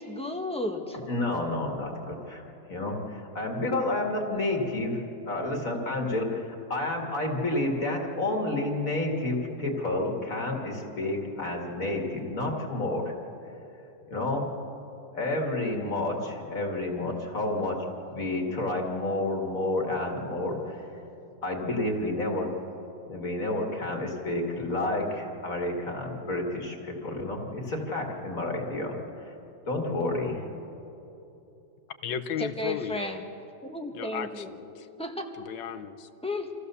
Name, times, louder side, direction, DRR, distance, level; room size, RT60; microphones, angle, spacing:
voice 1, 0.0-1.0 32.4-33.2 33.6-34.5 35.0-35.5 36.2-36.5, left 1 dB, 5° left, 2 dB, 1.3 m, -33 dB
voice 2, 0.9-2.4 2.7-13.1 14.1-14.5 15.1-17.8 18.1-20.8 21.4-22.5 23.1-29.3 29.7-30.5, left 2 dB, 50° left, 1 dB, 2.4 m, -30 dB
voice 3, 32.0-33.3 33.9-34.9 35.5-36.1, left 8 dB, 80° left, 8 dB, 1.5 m, -35 dB
27.0 x 15.0 x 6.9 m, 3.0 s
omnidirectional pair, 2.0 m